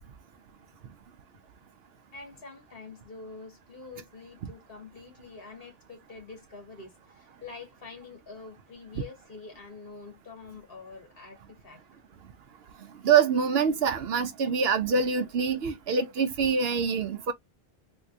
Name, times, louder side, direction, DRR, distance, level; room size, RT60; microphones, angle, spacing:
voice 1, 2.1-11.8, left 4 dB, 60° left, 2.0 m, -46 dB
voice 2, 13.0-17.3, right 6 dB, 70° right, 0.9 m, -25 dB
3.6 x 3.0 x 2.5 m
omnidirectional pair, 1.1 m